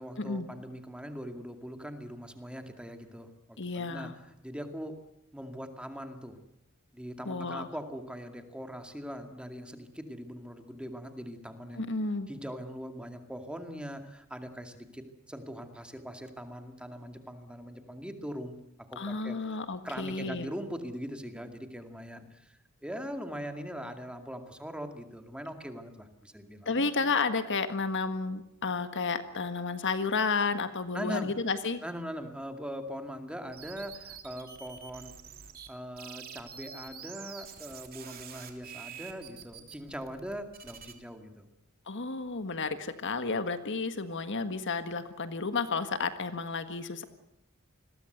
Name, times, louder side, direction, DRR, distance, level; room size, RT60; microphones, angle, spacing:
voice 1, 0.0-5.0 5.3-6.4 6.9-11.8 12.3-18.6 18.9-19.4 19.8-26.7 30.9-31.3 31.8-35.1 35.7-41.5, equal, 5° right, 6 dB, 2.3 m, -41 dB
voice 2, 3.6-4.1 7.2-7.7 11.8-12.3 19.0-20.5 26.6-31.8 41.9-47.0, left 4 dB, 55° left, 10 dB, 1.7 m, -32 dB
sound 1, 33.5-35.7 36.0-40.9, right 7 dB, 45° right, 3.3 m, -47 dB
28.0 x 21.5 x 8.1 m, 0.82 s
head